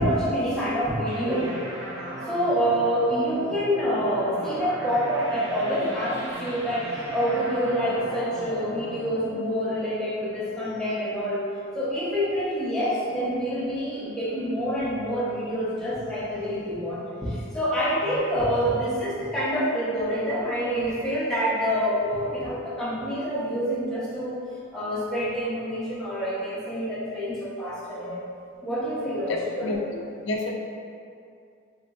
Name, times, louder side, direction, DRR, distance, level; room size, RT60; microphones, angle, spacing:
voice 1, 0.0-1.5 2.3-11.4 11.7-24.4 24.7-28.2 28.6-29.7, equal, 5° left, -10 dB, 0.7 m, -27 dB
sound 1, 1.1-10.4, right 1 dB, 65° right, 0.8 m, -37 dB
voice 2, 29.6-30.5, left 2 dB, 65° left, 0 dB, 0.4 m, -29 dB
3.7 x 2.4 x 2.3 m, 2.5 s
head